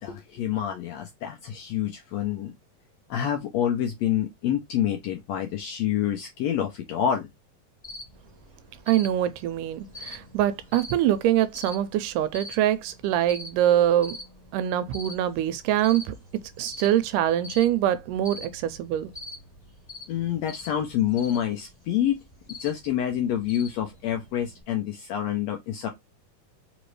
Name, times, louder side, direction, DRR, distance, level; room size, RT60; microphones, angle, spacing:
voice 1, 0.0-2.5 3.1-7.3 20.1-22.2 22.6-25.9, left 10 dB, 85° left, 1.5 m, -27 dB
Cricket, 7.8-24.6, left 2 dB, 25° left, 0.5 m, -45 dB
voice 2, 8.9-14.2 14.5-16.1 16.6-19.1, right 11 dB, 80° right, 2.1 m, -24 dB
4.9 x 3.0 x 3.1 m
omnidirectional pair, 3.8 m